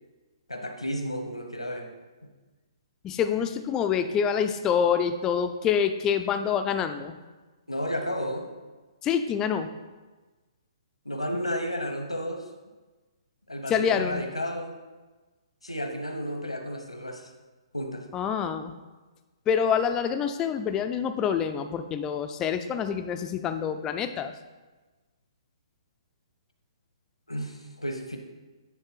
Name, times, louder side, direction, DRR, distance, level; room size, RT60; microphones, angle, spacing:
voice 1, 0.5-1.9 7.7-8.5 11.0-12.5 13.5-14.8 15.6-17.3 17.7-18.0 27.3-28.2, equal, 90° left, 4 dB, 1.0 m, -32 dB
voice 2, 3.0-7.1 9.0-9.7 13.7-14.2 18.1-18.7 19.5-24.3, left 7 dB, 20° left, 8 dB, 0.4 m, -26 dB
9.7 x 3.3 x 4.6 m, 1.2 s
figure-of-eight pair, 125°, 3 cm